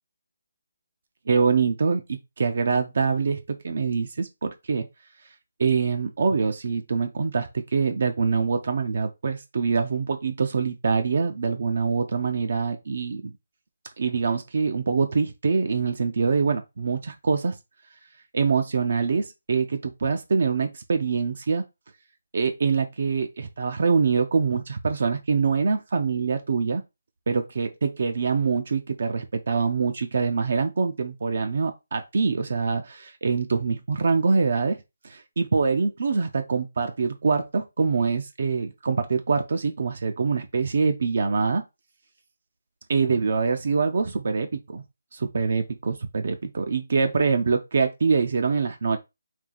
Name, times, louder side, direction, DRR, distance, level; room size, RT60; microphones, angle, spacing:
voice 1, 1.3-4.9 5.6-13.3 14.0-17.6 18.3-21.6 22.3-26.8 27.3-41.6 42.9-44.8 45.1-49.0, right 5 dB, 55° right, 0.7 m, -24 dB
4.6 x 2.9 x 3.9 m
hypercardioid pair, 170°, 0 cm